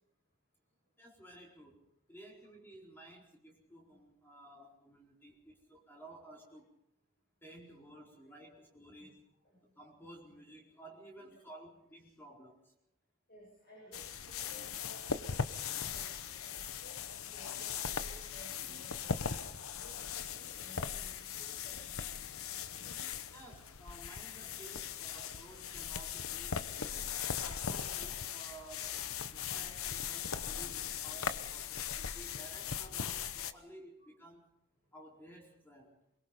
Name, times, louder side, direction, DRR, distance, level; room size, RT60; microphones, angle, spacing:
voice 1, 1.0-6.7 7.4-9.3 9.6-12.7 23.3-29.0 29.3-34.5 34.9-36.0, right 1 dB, 10° left, -1 dB, 4.4 m, -55 dB
voice 2, 13.3-19.4 19.7-23.2 30.5-31.7, equal, 45° left, -3 dB, 7.4 m, -59 dB
sound 1, 13.9-33.5, left 7 dB, 75° left, 1.0 m, -39 dB
23.0 x 22.0 x 5.2 m, 0.82 s
head